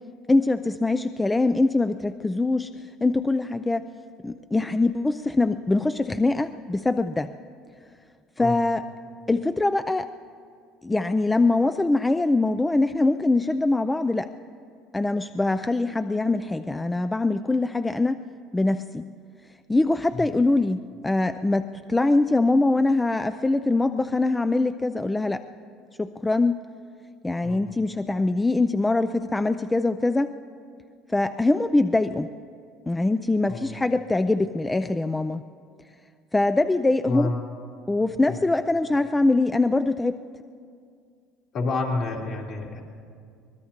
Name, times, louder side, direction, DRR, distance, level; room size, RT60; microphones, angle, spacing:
voice 1, 0.3-2.7 3.0-3.9 4.2-7.3 8.4-8.8 9.3-10.1 10.8-14.3 14.9-18.2 18.5-19.0 19.7-25.4 26.0-26.6 27.2-30.3 31.1-32.3 32.9-35.4 36.3-37.3 37.9-40.2, left 2 dB, 15° left, 10 dB, 0.4 m, -23 dB
voice 2, 33.5-33.8 37.0-37.4 38.3-38.4 41.5-42.8, left 3 dB, 55° left, -2 dB, 3.1 m, -29 dB
23.5 x 20.0 x 2.9 m, 2.2 s
supercardioid pair, 90°, 0 cm